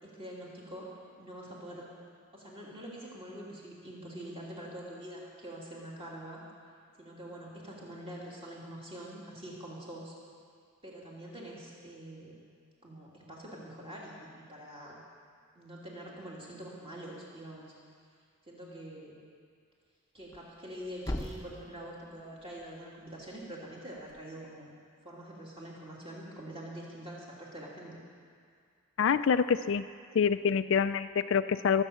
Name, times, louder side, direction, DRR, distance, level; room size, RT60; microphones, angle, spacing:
voice 1, 0.0-0.9 1.2-1.9 2.3-6.4 7.0-10.1 10.8-12.3 12.8-15.0 15.5-17.7 18.4-19.1 20.1-24.7 25.0-28.0, right 1 dB, 25° right, -5 dB, 3.0 m, -45 dB
Thump thud, 20.1-24.2, left 1 dB, 15° left, 0.8 m, -44 dB
voice 2, 29.0-29.8 30.1-31.8, left 6 dB, 55° left, 12 dB, 0.3 m, -26 dB
22.0 x 8.1 x 7.0 m, 2.2 s
head